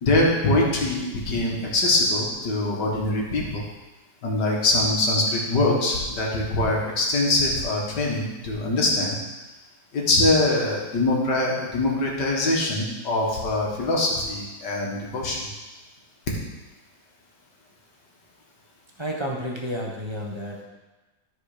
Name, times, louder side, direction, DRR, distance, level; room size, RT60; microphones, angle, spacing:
voice 1, 0.0-3.6 4.2-9.2 9.9-15.5, left 2 dB, 85° left, -2 dB, 2.4 m, -23 dB
voice 2, 19.0-20.6, equal, 20° right, -2 dB, 1.0 m, -31 dB
13.5 x 4.8 x 5.0 m, 1.1 s
omnidirectional pair, 1.8 m